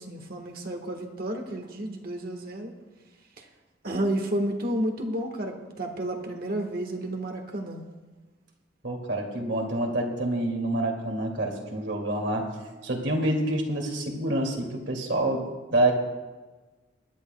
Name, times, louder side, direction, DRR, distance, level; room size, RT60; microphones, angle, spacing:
voice 1, 0.0-2.7 3.4-3.5 3.8-7.8, right 1 dB, 50° right, 3 dB, 1.4 m, -31 dB
voice 2, 8.8-12.5 12.8-15.9, right 1 dB, 70° right, 1 dB, 2.4 m, -27 dB
23.5 x 11.5 x 2.3 m, 1.3 s
head